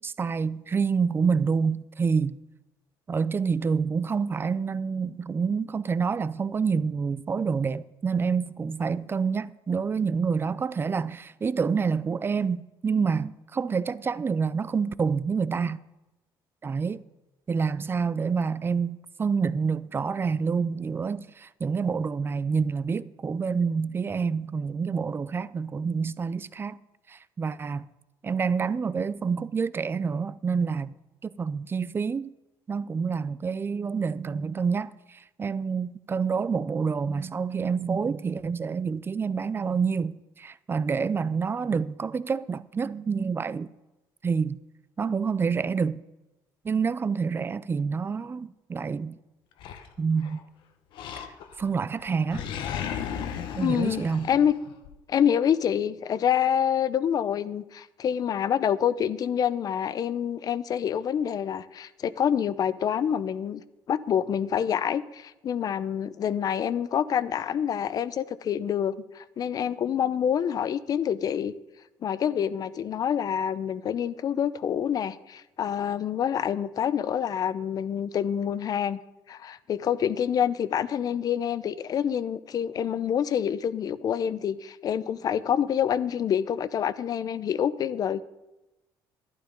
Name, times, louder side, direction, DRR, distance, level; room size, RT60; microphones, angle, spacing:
voice 1, 0.0-2.4 3.1-15.8 16.6-17.0 17.5-26.8 27.1-27.9 28.2-30.9 31.2-32.3 32.7-43.7 44.2-44.6 45.0-46.0 46.6-49.2 50.0-50.4 51.2-51.3 51.6-52.4 53.6-54.3, right 5 dB, 25° right, 0.5 m, -27 dB
Animal, 49.6-50.4 50.9-51.7 52.0-55.0, left 8 dB, 75° left, 1.1 m, -35 dB
voice 2, 53.6-54.5 55.1-63.6 63.9-71.5 72.0-79.0 79.3-88.2, left 9 dB, 50° left, 0.6 m, -27 dB
12.0 x 11.5 x 5.2 m
cardioid pair, 105°, 8 cm